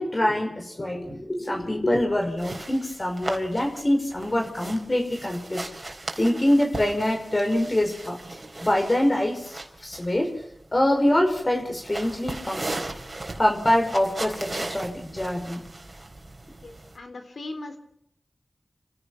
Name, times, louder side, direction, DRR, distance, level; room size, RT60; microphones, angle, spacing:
voice 1, 0.0-5.7 6.2-8.2 8.6-9.5 9.8-10.3 10.7-12.6 13.4-15.6, left 1 dB, 40° left, 3 dB, 5.6 m, -24 dB
sound 1, 2.4-17.0, right 2 dB, 45° right, 4.1 m, -38 dB
voice 2, 16.6-17.8, left 2 dB, 85° left, 7 dB, 3.5 m, -38 dB
29.0 x 15.5 x 5.9 m, 0.74 s
cardioid pair, 45°, 0 cm